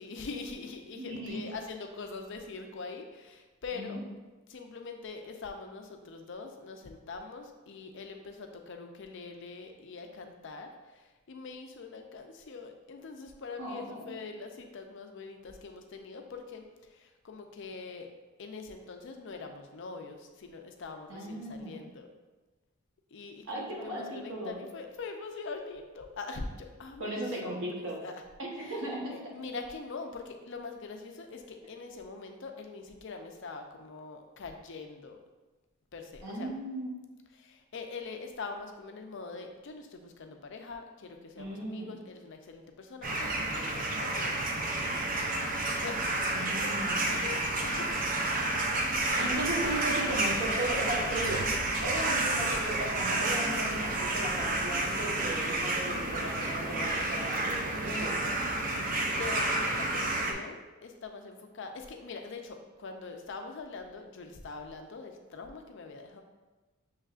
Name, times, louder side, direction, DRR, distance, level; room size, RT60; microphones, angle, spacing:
voice 1, 0.0-4.0 4.5-18.1 18.4-22.1 23.1-28.2 28.6-28.8 29.1-35.2 35.9-36.5 37.3-44.5 44.8-45.5 45.8-46.7 47.1-48.4 48.9-49.8 59.1-66.2, left 4 dB, 55° left, 5 dB, 0.5 m, -43 dB
voice 2, 1.0-1.4 3.7-4.0 13.6-14.2 21.1-21.8 23.5-24.6 27.0-28.0 28.4-29.1 36.2-36.9 41.4-42.0 46.3-47.2 49.2-51.4 51.8-58.4, right 1 dB, 60° right, -3 dB, 1.1 m, -36 dB
sound 1, 43.0-60.3, right 2 dB, 40° right, 0.4 m, -30 dB
6.6 x 3.2 x 2.4 m, 1.2 s
head